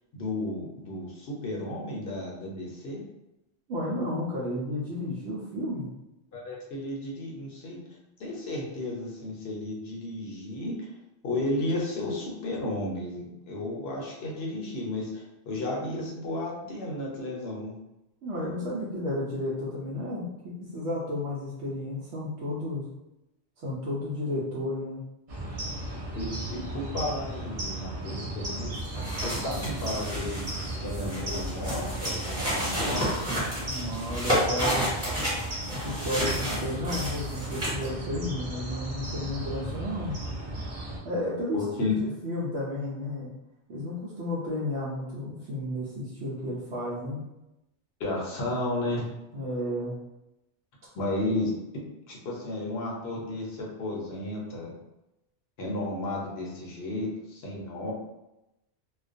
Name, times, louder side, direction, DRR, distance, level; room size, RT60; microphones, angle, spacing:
voice 1, 0.1-3.0 6.3-7.8 8.2-10.9 11.2-17.7 26.2-28.7 29.2-30.5 30.8-33.1 41.5-42.0 48.0-49.1 50.9-54.7 55.6-57.9, left 2 dB, 65° left, -2 dB, 0.8 m, -33 dB
voice 2, 3.7-5.9 18.2-22.9 23.6-25.0 33.6-34.9 35.7-40.2 41.0-43.3 43.7-47.2 49.3-50.0, left 1 dB, 80° right, -7 dB, 0.9 m, -32 dB
sound 1, 25.3-41.0, right 1 dB, 50° right, 0.4 m, -35 dB
sound 2, 28.8-37.9, equal, 15° right, 1.2 m, -31 dB
2.4 x 2.2 x 2.5 m, 0.92 s
omnidirectional pair, 1.2 m